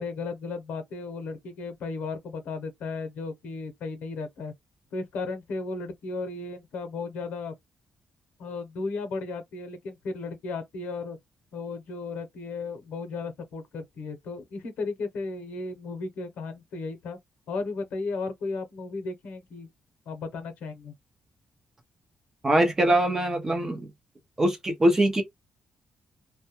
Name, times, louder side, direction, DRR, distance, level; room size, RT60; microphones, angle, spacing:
voice 1, 0.0-4.5 4.9-7.5 8.4-11.2 11.5-17.2 17.5-19.7 20.1-20.9, left 3 dB, 80° left, 0.7 m, -35 dB
voice 2, 22.4-23.9 24.4-25.2, right 1 dB, 20° right, 0.6 m, -22 dB
2.2 x 2.1 x 2.9 m
cardioid pair, 145°, 3 cm